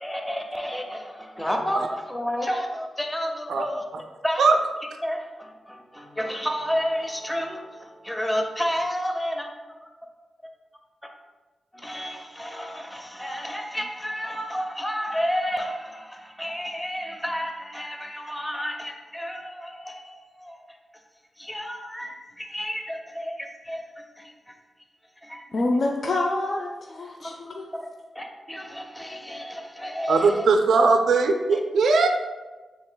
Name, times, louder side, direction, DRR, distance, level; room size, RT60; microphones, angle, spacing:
voice 1, 0.0-3.9 4.2-4.4 5.0-9.5 11.7-20.8 21.4-24.5 25.2-25.4 27.2-27.4 27.7-27.9 28.1-30.5 31.5-31.6, equal, 10° left, 3 dB, 0.6 m, -31 dB
voice 2, 25.5-27.7, left 2 dB, 55° left, 1 dB, 0.4 m, -26 dB
voice 3, 30.1-32.1, right 4 dB, 85° right, 5 dB, 0.3 m, -19 dB
6.0 x 3.4 x 2.2 m, 1.2 s
cardioid pair, 75°, 0 cm